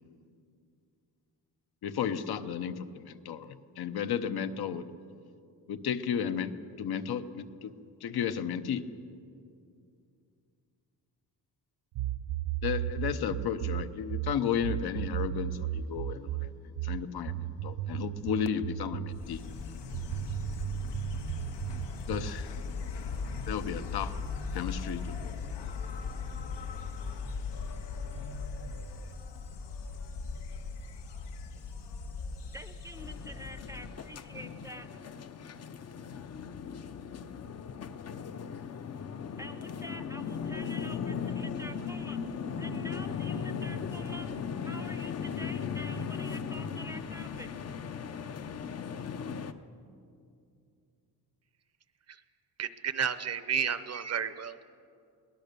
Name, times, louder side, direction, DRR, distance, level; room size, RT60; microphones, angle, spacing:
voice 1, 1.8-4.8 5.7-6.5 6.8-7.7 8.0-8.8 12.6-16.5 16.8-19.4 22.1-22.5 23.5-24.1 24.5-25.3, left 8 dB, 70° left, 10 dB, 1.0 m, -33 dB
sound 1, 12.0-19.2 19.9-22.4, right 13 dB, 90° right, 0.6 m, -35 dB
Insect, 19.1-34.2, left 4 dB, 90° left, 1.8 m, -39 dB
voice 2, 32.5-35.0 39.4-42.2 42.6-44.3 44.6-47.5, equal, 10° right, 7 dB, 0.6 m, -47 dB
sound 2, 32.9-49.5, left 6 dB, 40° left, 0.7 m, -37 dB
voice 3, 52.6-54.6, right 7 dB, 40° right, 13 dB, 0.7 m, -32 dB
22.5 x 18.0 x 6.8 m, 2.5 s
wide cardioid pair, 180°, 40 cm